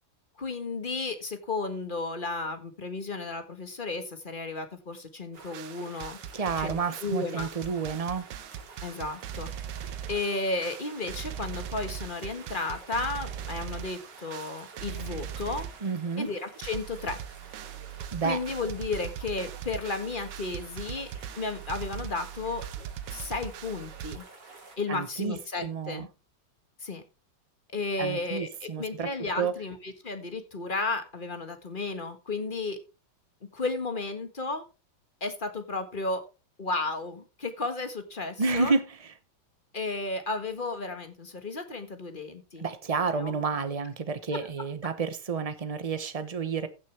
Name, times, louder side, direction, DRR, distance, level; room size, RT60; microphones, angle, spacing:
voice 1, 0.4-6.2 6.6-7.5 7.8-7.9 8.8-9.5 10.1-15.7 16.2-17.2 18.2-21.1 21.4-22.7 23.1-24.2 24.8-26.1 26.8-27.0 27.7-32.8 33.5-34.6 35.2-36.2 36.6-38.7 39.7-42.6 43.1-43.4 44.3-44.7, left 3 dB, 30° left, 1.4 m, -33 dB
sound 1, 5.3-24.8, right 3 dB, 60° right, 3.5 m, -51 dB
sound 2, 5.4-16.1 16.4-16.5 16.6-24.2, right 10 dB, 80° right, 1.6 m, -40 dB
voice 2, 6.3-8.3 15.8-16.3 18.1-18.4 24.9-25.3 25.6-26.1 28.0-29.1 29.4-29.5 38.4-39.0 42.6-46.7, right 4 dB, 35° right, 0.5 m, -30 dB
15.5 x 6.5 x 3.3 m
omnidirectional pair, 2.2 m